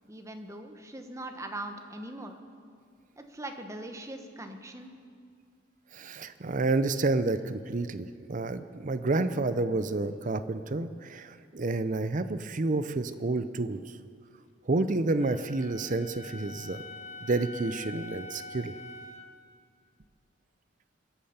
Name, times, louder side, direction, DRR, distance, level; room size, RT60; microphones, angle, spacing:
voice 1, 0.1-2.3 3.2-4.9, right 1 dB, 15° right, 5 dB, 1.1 m, -41 dB
voice 2, 5.9-13.8 14.7-16.8 17.3-18.7, right 2 dB, 45° right, 12 dB, 0.6 m, -29 dB
Wind instrument woodwind instrument, 15.2-19.3, left 2 dB, 35° left, 0.9 m, -44 dB
25.5 x 8.6 x 5.8 m, 2.2 s
head